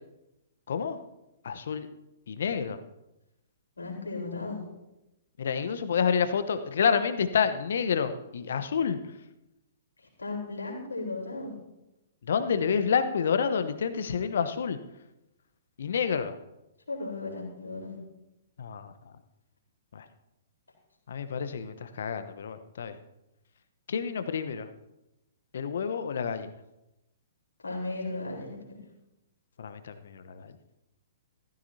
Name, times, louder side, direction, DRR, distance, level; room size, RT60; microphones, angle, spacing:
voice 1, 0.7-1.0 1.4-1.9 2.3-2.8 5.4-9.1 12.2-14.8 15.8-16.4 18.6-19.1 19.9-20.1 21.1-23.0 23.9-24.7 25.5-26.5 29.6-30.6, left 6 dB, 60° left, 11 dB, 1.0 m, -29 dB
voice 2, 3.8-4.6 10.2-11.5 16.9-18.0 27.6-28.5, left 3 dB, 80° left, -2 dB, 4.2 m, -35 dB
15.5 x 14.5 x 2.8 m, 0.92 s
figure-of-eight pair, 115°, 0 cm